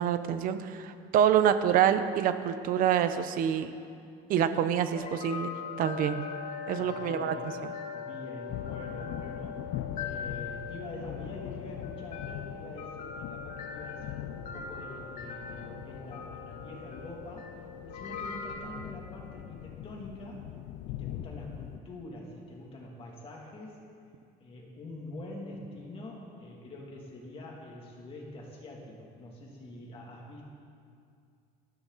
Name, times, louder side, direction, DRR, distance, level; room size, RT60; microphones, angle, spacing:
voice 1, 0.0-3.7 4.3-5.5 5.8-6.3 6.7-7.3, right 9 dB, 55° right, 10 dB, 0.9 m, -26 dB
Our Chimes, 4.9-18.6, left 6 dB, 45° left, 1.9 m, -41 dB
voice 2, 6.8-7.6 7.9-9.6 10.0-20.4 20.9-23.8 24.4-30.4, left 1 dB, 30° left, -2 dB, 3.0 m, -45 dB
sound 1, 8.5-21.8, left 11 dB, 80° left, 0.7 m, -42 dB
18.5 x 14.0 x 4.2 m, 2.3 s
cardioid pair, 160°, 18 cm